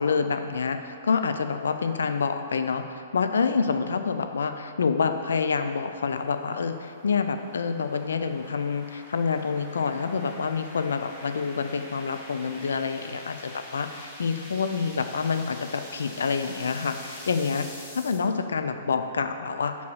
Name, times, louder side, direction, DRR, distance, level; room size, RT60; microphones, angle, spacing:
voice 1, 0.0-19.8, left 5 dB, 70° left, 8 dB, 0.5 m, -27 dB
sound 1, 4.3-18.2, left 1 dB, 20° left, 1.7 m, -46 dB
5.3 x 4.7 x 6.2 m, 2.4 s
figure-of-eight pair, 120°, 0 cm